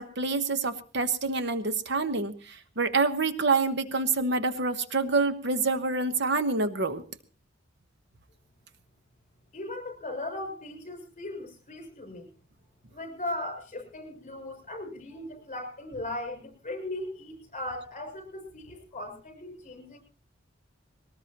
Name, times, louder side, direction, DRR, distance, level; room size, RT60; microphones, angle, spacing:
voice 1, 0.0-7.0, right 3 dB, 65° right, 10 dB, 1.1 m, -27 dB
voice 2, 9.5-12.3 12.9-20.0, left 1 dB, 40° left, 5 dB, 6.2 m, -38 dB
21.0 x 19.0 x 2.9 m, 0.35 s
head